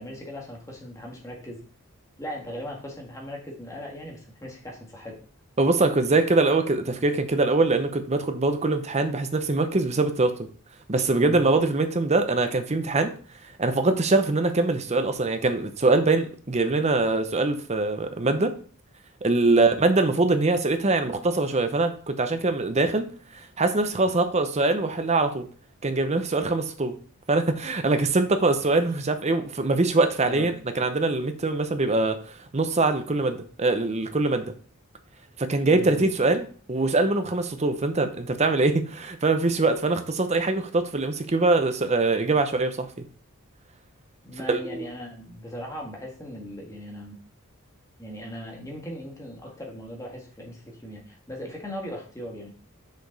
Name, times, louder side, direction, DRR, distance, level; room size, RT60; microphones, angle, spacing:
voice 1, 0.0-1.6 2.2-5.2 11.1-11.4 19.5-19.7 30.2-30.5 35.7-36.1 44.2-47.2 48.0-52.5, equal, 15° left, -1 dB, 1.7 m, -38 dB
voice 2, 5.6-10.3 10.9-13.1 13.6-18.5 19.2-23.1 23.3-25.5 25.8-27.0 27.3-32.2 32.5-34.4 35.4-43.1 44.5-44.9, right 3 dB, 30° right, 8 dB, 0.7 m, -23 dB
6.5 x 5.1 x 4.0 m, 0.43 s
head